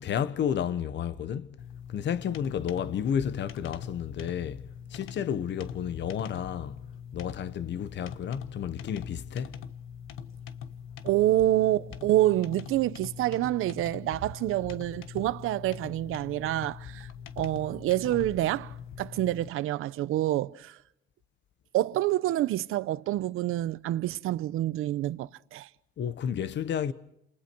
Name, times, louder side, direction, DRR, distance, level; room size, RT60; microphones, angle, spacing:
voice 1, 0.0-1.5 1.9-6.8 7.1-9.6 26.0-26.9, left 8 dB, 60° left, 1.1 m, -31 dB
sound 1, 1.6-19.5, left 8 dB, 80° left, 1.3 m, -43 dB
voice 2, 11.0-17.1 17.4-20.8 21.7-25.7, right 14 dB, 85° right, 0.8 m, -27 dB
30.0 x 28.5 x 4.6 m
cardioid pair, 120°, 21 cm